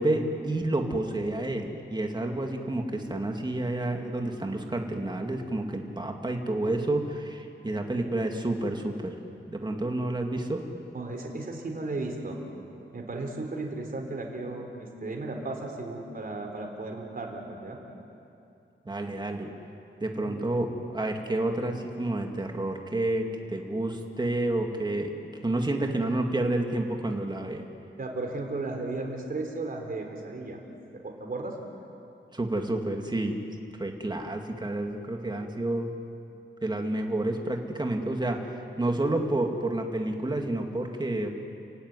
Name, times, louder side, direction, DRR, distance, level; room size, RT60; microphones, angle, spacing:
voice 1, 0.0-9.1 9.5-10.6 18.9-19.5 20.0-25.1 25.4-27.6 32.3-33.4 33.8-35.9 36.6-41.3, right 1 dB, 20° right, 3 dB, 2.2 m, -29 dB
voice 2, 10.9-12.4 12.9-17.8 20.3-20.7 28.0-30.6 30.9-31.6, right 2 dB, 45° right, 2 dB, 3.8 m, -35 dB
30.0 x 16.0 x 9.7 m, 2.7 s
wide cardioid pair, 135°, 21 cm